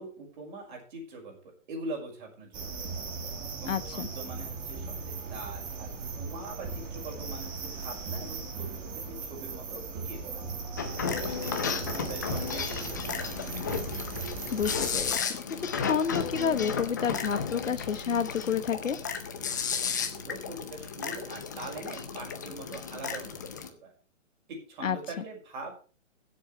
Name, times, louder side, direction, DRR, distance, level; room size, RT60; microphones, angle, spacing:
voice 1, 0.0-3.1 3.6-10.4 11.0-13.4 20.0-23.9 24.5-25.7, right 2 dB, 40° right, 1 dB, 6.0 m, -43 dB
sound 1, 2.5-15.2, right 4 dB, 10° right, 1.2 m, -38 dB
voice 2, 3.6-4.1 14.5-15.2 15.6-19.0 24.8-25.0, left 7 dB, 85° left, 11 dB, 1.5 m, -29 dB
sound 2, 10.8-23.7, left 6 dB, 15° left, 0.5 m, -34 dB
22.0 x 7.8 x 3.3 m, 0.36 s
hypercardioid pair, 165°, 38 cm